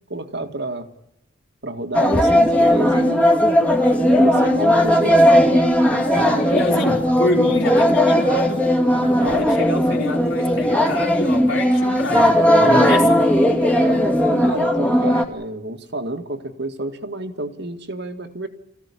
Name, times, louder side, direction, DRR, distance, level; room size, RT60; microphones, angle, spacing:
voice 1, 0.1-0.9 1.6-3.2 4.0-5.7 13.5-18.5, right 1 dB, 55° right, 7 dB, 2.1 m, -30 dB
sound 1, 1.9-15.2, equal, 5° left, 2.3 m, -17 dB
voice 2, 6.1-8.7 9.2-13.2, left 1 dB, 65° left, -6 dB, 4.0 m, -27 dB
27.0 x 16.0 x 10.0 m, 0.80 s
head